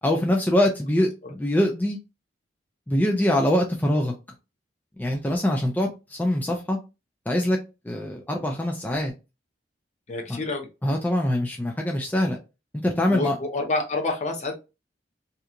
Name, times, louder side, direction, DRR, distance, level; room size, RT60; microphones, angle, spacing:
voice 1, 0.0-2.0 2.9-4.1 5.0-6.8 7.3-7.6 7.8-9.1 10.3-10.4 10.8-12.4 12.8-13.4, left 1 dB, 10° left, 0.4 m, -23 dB
voice 2, 10.1-10.7 13.1-14.6, left 2 dB, 40° left, 0.7 m, -28 dB
2.8 x 2.3 x 2.4 m
head